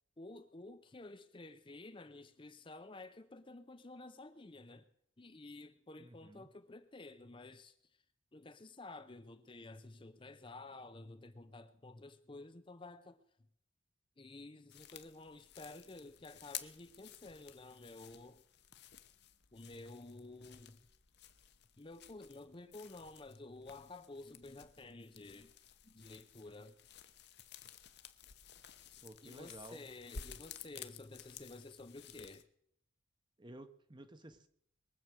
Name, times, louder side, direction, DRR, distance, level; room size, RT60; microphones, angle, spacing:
voice 1, 0.2-4.9 5.2-7.8 8.3-13.2 14.2-18.4 19.5-20.8 21.8-25.5 25.8-26.8 28.8-28.9 29.2-32.4, left 2 dB, 25° left, 0.6 m, -52 dB
voice 2, 6.0-6.5 29.0-29.9 33.4-34.5, right 1 dB, 20° right, 1.0 m, -53 dB
sound 1, 14.7-32.4, left 8 dB, 55° left, 0.9 m, -54 dB
22.5 x 7.9 x 6.2 m
head